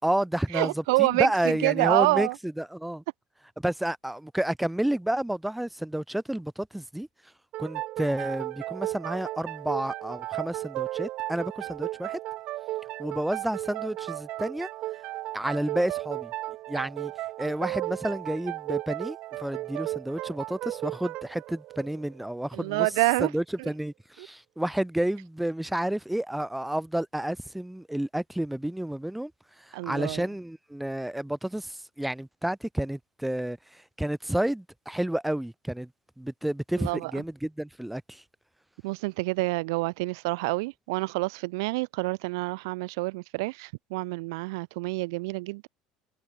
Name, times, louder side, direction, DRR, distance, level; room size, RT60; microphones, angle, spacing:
voice 1, 0.0-0.7 1.0-3.0 3.6-7.1 7.6-12.2 13.0-14.7 15.3-16.3 16.7-17.1 17.4-22.9 23.2-29.3 29.7-33.6 34.0-35.9 36.2-38.2, right 1 dB, 5° right, 4.7 m, -30 dB
voice 2, 0.5-2.4 22.5-23.3 23.6-23.7 24.2-24.3 29.7-30.2 36.8-37.1 38.8-45.7, right 25 dB, 85° right, 4.7 m, -27 dB
sound 1, 7.5-22.9, right 16 dB, 60° right, 2.6 m, -35 dB
supercardioid pair, 110°, 2 cm